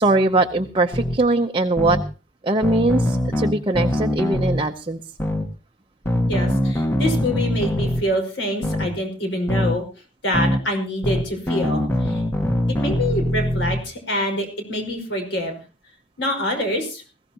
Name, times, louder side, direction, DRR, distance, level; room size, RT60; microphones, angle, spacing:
voice 1, 0.0-2.0 2.4-5.0, right 2 dB, 25° right, 3 dB, 0.7 m, -21 dB
sound 1, 0.9-1.2 1.8-2.0 2.6-4.6 5.2-5.5 6.1-8.0 8.6-8.9 9.5-9.7 10.3-10.6 11.0-13.8, left 1 dB, 10° left, 1.3 m, -22 dB
voice 2, 6.3-9.9 10.2-12.2 12.7-15.5 16.2-17.0, equal, 60° left, 4 dB, 5.3 m, -26 dB
20.5 x 16.5 x 2.9 m, 0.34 s
head